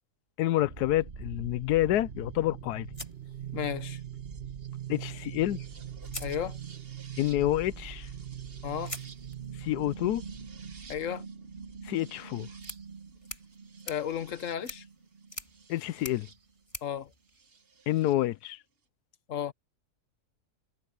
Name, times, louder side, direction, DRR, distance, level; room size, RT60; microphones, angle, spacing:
voice 1, 0.4-2.9 4.9-5.6 7.2-8.1 9.6-10.2 11.8-12.5 15.7-16.3 17.9-18.6, left 14 dB, 85° left, 1.1 m, -28 dB
sound 1, 0.6-16.4 17.5-18.1, right 8 dB, 40° right, 1.3 m, -42 dB
sound 2, 2.9-4.1 5.4-5.5 6.0-7.0 8.8-18.0, left 1 dB, 20° left, 3.7 m, -47 dB
voice 2, 3.5-4.0 6.2-6.6 8.6-8.9 10.9-11.2 13.9-14.8 16.8-17.1 19.3-19.5, left 9 dB, 55° left, 1.5 m, -33 dB
omnidirectional pair, 1.7 m